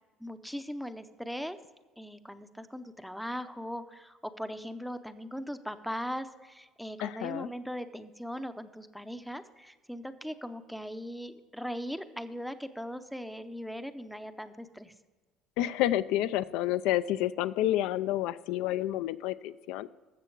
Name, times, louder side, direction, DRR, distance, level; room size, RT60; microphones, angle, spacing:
voice 1, 0.2-1.6 2.0-14.9, equal, ahead, 11 dB, 0.6 m, -39 dB
voice 2, 7.0-7.5 15.6-19.9, left 13 dB, 75° left, 14 dB, 0.4 m, -29 dB
13.5 x 7.6 x 4.6 m, 1.3 s
cardioid pair, 145°, 0 cm